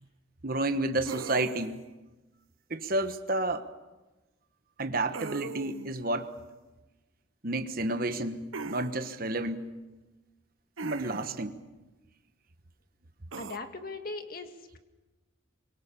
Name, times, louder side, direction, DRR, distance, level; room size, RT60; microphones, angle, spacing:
voice 1, 0.4-1.8 2.7-3.7 4.8-6.3 7.4-9.7 10.8-11.5, right 2 dB, 45° right, 9 dB, 1.3 m, -31 dB
sound 1, 1.1-1.8 5.1-5.9 8.5-8.9 10.8-11.4 13.3-13.6, right 4 dB, 90° right, 1.0 m, -39 dB
voice 2, 13.4-14.8, left 3 dB, 45° left, 6 dB, 1.9 m, -39 dB
25.0 x 23.0 x 6.9 m, 1.1 s
head